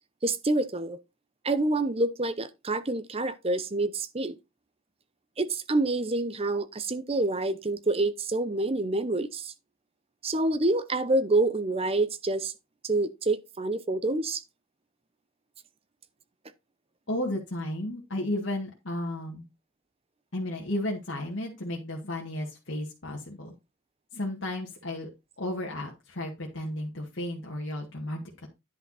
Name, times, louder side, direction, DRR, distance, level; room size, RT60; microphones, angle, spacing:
voice 1, 0.2-1.0 1.4-4.4 5.4-9.5 10.2-12.5 12.8-14.4, right 2 dB, 30° right, 0.7 m, -27 dB
voice 2, 17.1-19.4 20.3-23.5 24.1-25.1 25.4-28.5, left 1 dB, 60° left, 1.9 m, -33 dB
10.5 x 5.8 x 4.1 m
head